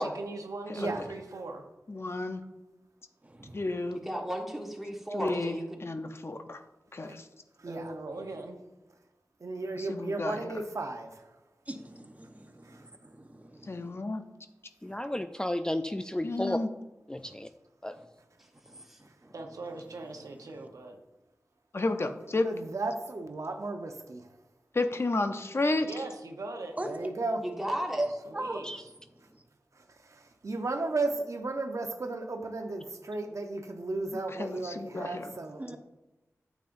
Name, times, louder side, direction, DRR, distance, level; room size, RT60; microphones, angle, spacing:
voice 1, 0.0-1.6 7.7-8.6 19.3-21.0 25.8-26.8 28.2-28.9, right 2 dB, 90° right, 3 dB, 0.9 m, -40 dB
voice 2, 1.9-2.4 3.5-4.0 5.1-6.6 6.9-7.2 9.7-10.5 13.7-14.2 16.2-16.7 21.7-22.5 24.7-25.9 34.4-35.3, left 2 dB, 50° left, 7 dB, 0.7 m, -31 dB
voice 3, 3.2-3.7 11.7-14.0 14.8-14.9 17.2-17.3 17.9-18.1 18.7-19.3 26.8-26.9 28.0-28.1 28.3-28.6 29.3-29.4 35.6-35.8, right 1 dB, 25° right, 5 dB, 1.0 m, -39 dB
voice 4, 3.9-5.8 18.9-19.0 27.4-28.0, equal, 5° right, 0 dB, 1.6 m, -34 dB
voice 5, 7.6-7.9 9.4-11.3 12.6-12.8 22.4-24.3 26.9-27.4 29.7-35.8, right 3 dB, 65° right, 5 dB, 0.8 m, -34 dB
voice 6, 14.8-16.6 17.1-17.5 17.8-17.9 28.6-28.8, left 1 dB, 15° left, 9 dB, 0.3 m, -32 dB
9.0 x 7.3 x 2.6 m, 1.0 s
cardioid pair, 50°, 6 cm